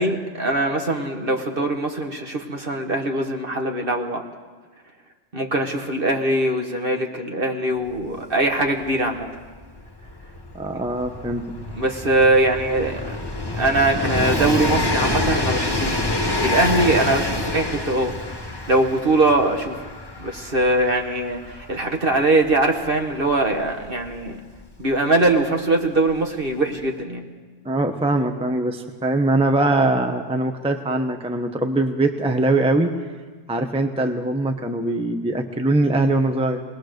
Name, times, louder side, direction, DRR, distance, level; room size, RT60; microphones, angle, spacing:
voice 1, 0.0-4.2 5.3-9.3 11.8-13.2 13.5-16.1 16.4-18.1 18.7-19.8 20.2-24.4 24.8-27.2, right 2 dB, 45° right, 3 dB, 1.8 m, -22 dB
Train, 8.0-8.1 8.3-24.9 25.9-26.0, left 2 dB, 20° left, 1.5 m, -27 dB
voice 2, 10.5-11.4 27.6-32.9 33.5-36.6, right 2 dB, 5° right, 5 dB, 0.9 m, -22 dB
21.0 x 20.0 x 6.6 m, 1.4 s
omnidirectional pair, 1.3 m